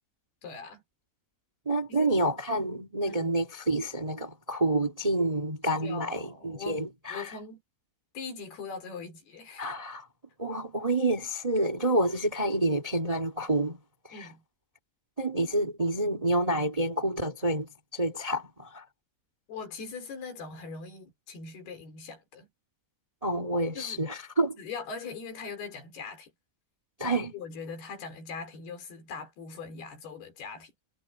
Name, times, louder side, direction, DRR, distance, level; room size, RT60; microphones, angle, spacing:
voice 1, 0.4-0.8 1.9-2.1 3.1-3.3 5.7-7.6 8.1-9.7 14.1-14.4 19.5-22.5 23.8-24.0 24.6-26.3 27.0-30.7, left 4 dB, 90° left, 6.4 m, -41 dB
voice 2, 1.6-7.3 9.6-10.1 10.4-13.8 14.0-14.3 15.2-18.8 23.2-24.6 27.0-27.3, right 1 dB, 15° right, 1.2 m, -28 dB
omnidirectional pair, 4.4 m